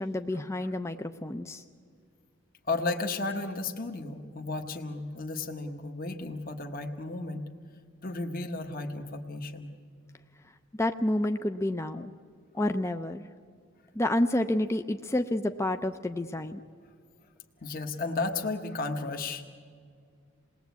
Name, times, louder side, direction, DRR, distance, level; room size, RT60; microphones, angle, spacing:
voice 1, 0.0-1.6 10.8-12.1 12.5-13.2 13.9-16.6, left 1 dB, 15° left, 7 dB, 0.5 m, -29 dB
voice 2, 2.7-7.5 8.0-9.7 17.6-19.5, left 3 dB, 45° left, 4 dB, 1.2 m, -33 dB
28.0 x 19.5 x 8.3 m, 2.1 s
head